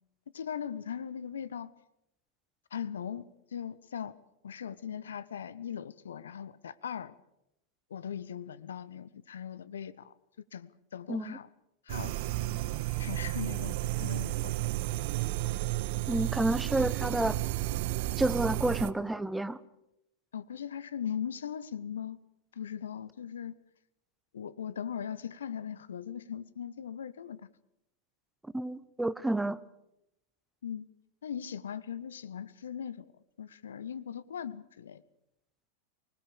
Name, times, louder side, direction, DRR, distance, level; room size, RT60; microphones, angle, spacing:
voice 1, 0.3-1.7 2.7-3.3 3.5-4.2 4.4-7.1 7.9-10.1 10.5-11.5 11.9-12.6 13.0-14.5 20.3-22.2 22.5-23.6 24.3-27.4 30.6-30.9 31.2-33.1 33.4-35.0, left 8 dB, 65° left, 18 dB, 0.8 m, -39 dB
sound 1, 11.9-18.9, right 17 dB, 50° right, 0.8 m, -32 dB
voice 2, 16.1-17.4 18.2-19.6 28.5-29.6, right 1 dB, 5° right, 17 dB, 0.9 m, -30 dB
25.0 x 20.0 x 7.0 m, 0.85 s
figure-of-eight pair, 90°, 0 cm